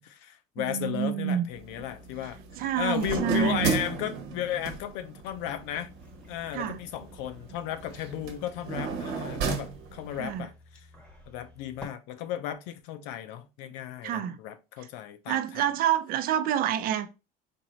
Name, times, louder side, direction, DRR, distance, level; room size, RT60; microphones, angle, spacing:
voice 1, 0.0-2.4 2.8-5.9 6.3-10.5 11.3-15.7, left 11 dB, 80° left, 0.6 m, -35 dB
voice 2, 0.6-1.5 2.6-3.7 6.5-6.8 10.2-10.5 14.0-14.4 15.3-17.1, right 9 dB, 55° right, 0.5 m, -28 dB
sound 1, 1.5-10.4, right 5 dB, 70° right, 1.1 m, -35 dB
sound 2, 5.3-11.9, left 1 dB, 5° left, 1.0 m, -53 dB
4.3 x 2.6 x 3.1 m
cardioid pair, 130°, 18 cm